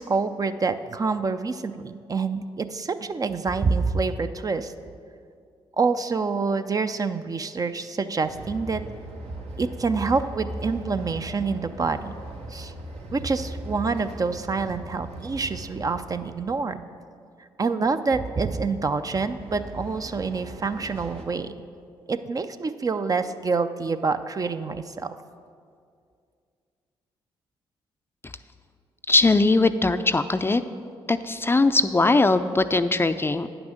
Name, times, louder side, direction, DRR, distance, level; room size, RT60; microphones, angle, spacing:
voice 1, 0.0-4.7 5.8-8.8 9.6-12.1 12.5-12.7 13.1-16.8 17.6-21.5 22.1-25.2, right 4 dB, 35° right, 10 dB, 0.5 m, -27 dB
Train, 8.2-16.7 18.5-21.2, right 1 dB, 70° right, 1.2 m, -38 dB
voice 2, 29.1-30.6 31.1-33.5, left 3 dB, 20° left, 11 dB, 0.4 m, -20 dB
9.3 x 6.0 x 6.4 m, 2.3 s
supercardioid pair, 50°, 11 cm